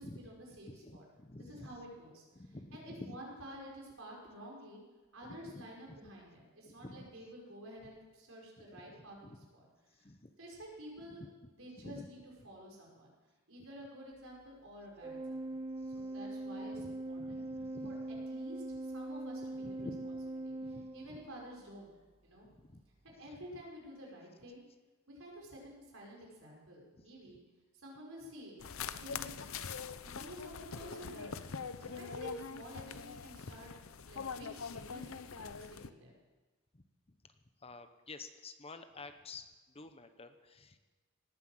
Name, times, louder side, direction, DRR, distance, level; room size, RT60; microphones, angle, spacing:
voice 1, 0.0-1.0 1.4-2.2 2.7-4.8 5.1-9.7 9.9-10.1 10.4-11.2 11.6-12.2 12.4-13.1 13.5-15.6 15.9-17.4 17.8-18.0 18.3-19.9 20.4-21.9 22.2-22.5 23.0-24.6 25.1-27.4 27.7-28.6 28.8-29.7 30.0-31.4 31.8-33.7 34.1-36.2, equal, 65° right, -2 dB, 5.4 m, -50 dB
voice 2, 0.7-1.7 2.3-3.2 5.2-5.6 5.9-6.0 6.6-7.1 8.6-9.5 9.9-10.3 11.0-11.3 11.8-12.1 15.8-16.1 16.7-18.3 19.6-20.2 20.6-21.2 22.4-22.8 23.1-23.5 26.9-27.1 31.8-32.0 36.7-40.8, left 2 dB, 30° left, 9 dB, 0.9 m, -51 dB
Organ, 15.0-21.6, right 2 dB, 25° right, 0.7 m, -42 dB
sound 1, 28.6-35.9, left 6 dB, 70° left, 0.7 m, -43 dB
18.0 x 9.9 x 7.8 m, 1.3 s
head